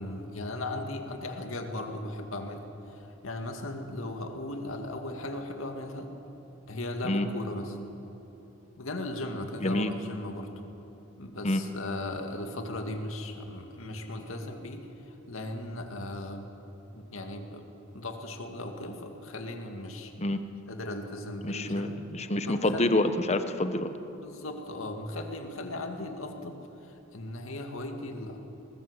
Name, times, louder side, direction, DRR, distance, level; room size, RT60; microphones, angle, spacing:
voice 1, 0.0-2.6 2.9-6.1 6.7-7.8 8.8-10.5 11.2-16.5 16.9-17.7 17.9-20.1 20.7-21.9 22.5-23.0 24.1-28.4, left 1 dB, 90° left, 4 dB, 2.2 m, -37 dB
voice 2, 21.4-23.9, left 1 dB, 35° left, 9 dB, 1.1 m, -27 dB
20.5 x 20.0 x 8.2 m, 3.0 s
head